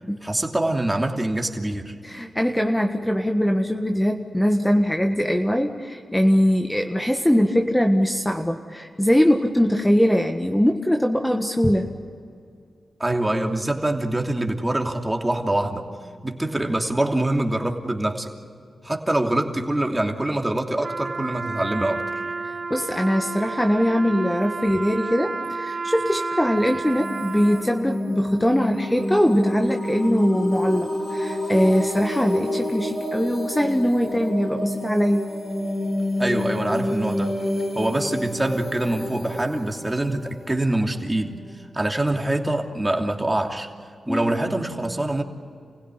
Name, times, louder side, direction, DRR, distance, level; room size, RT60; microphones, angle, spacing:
voice 1, 0.2-1.9 13.0-15.9 16.2-18.3 18.8-22.2 36.2-37.3 37.7-41.4 41.7-43.7 44.1-45.2, right 1 dB, 15° right, 2 dB, 2.9 m, -24 dB
voice 2, 2.0-11.9 22.4-35.2 44.1-44.4, equal, 10° left, 3 dB, 1.6 m, -21 dB
Trumpet, 20.8-27.8, right 3 dB, 50° right, 2.4 m, -31 dB
sound 1, 26.7-41.3, left 1 dB, 40° left, 5.6 m, -28 dB
29.0 x 16.5 x 9.9 m, 2.3 s
cardioid pair, 45°, 0 cm